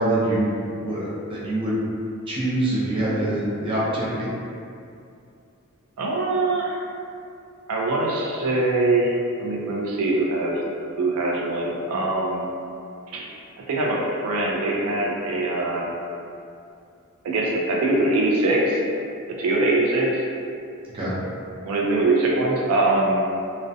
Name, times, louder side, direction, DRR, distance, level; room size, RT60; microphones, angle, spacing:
voice 1, 0.0-1.8 2.3-4.3 20.9-21.1, right 1 dB, 25° right, -8 dB, 0.5 m, -24 dB
voice 2, 6.0-6.8 7.7-10.6 11.0-12.4 13.1-13.3 13.7-15.9 17.2-18.8 19.3-20.2 21.6-23.2, right 2 dB, 90° right, -2 dB, 0.4 m, -22 dB
2.4 x 2.0 x 2.5 m, 2.5 s
head